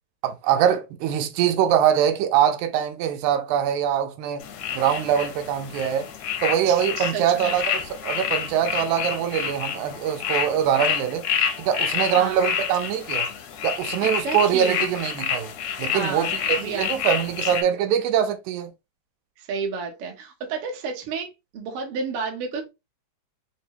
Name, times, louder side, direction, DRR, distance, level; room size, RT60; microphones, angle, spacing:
voice 1, 0.2-4.4 4.7-6.1 6.4-11.2 11.6-13.3 13.6-15.5 15.8-18.7, right 9 dB, 90° right, 2.0 m, -23 dB
sound 1, 4.4-17.6, left 8 dB, 80° left, 1.6 m, -28 dB
voice 2, 7.1-7.5 12.2-12.4 14.0-14.9 15.9-16.9 17.4-17.5 19.4-22.7, right 5 dB, 65° right, 1.5 m, -31 dB
4.6 x 2.0 x 2.7 m
omnidirectional pair, 3.3 m